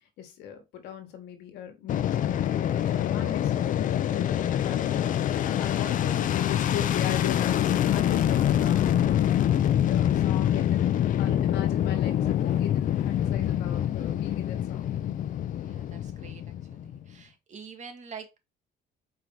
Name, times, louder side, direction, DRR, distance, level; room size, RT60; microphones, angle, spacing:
voice 1, 0.2-5.0 5.3-9.3 9.8-14.9, left 10 dB, 80° left, 1.3 m, -39 dB
Fixed-wing aircraft airplane, 1.9-17.1, left 11 dB, 50° left, 0.5 m, -25 dB
voice 2, 15.6-18.4, right 6 dB, 45° right, 1.2 m, -46 dB
4.7 x 2.8 x 3.8 m
cardioid pair, 110°, 17 cm